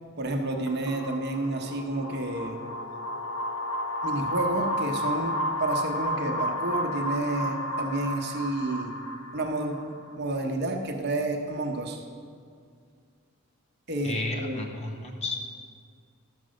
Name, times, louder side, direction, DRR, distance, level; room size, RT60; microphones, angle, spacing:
voice 1, 0.2-2.6 4.0-8.9 9.3-9.8 10.2-12.0 13.9-14.6, right 2 dB, 45° right, 3 dB, 0.9 m, -30 dB
sound 1, 0.7-10.1, equal, 80° left, 0.8 m, -32 dB
voice 2, 14.0-15.4, left 3 dB, 30° left, 1 dB, 0.9 m, -32 dB
12.5 x 5.4 x 6.3 m, 2.2 s
head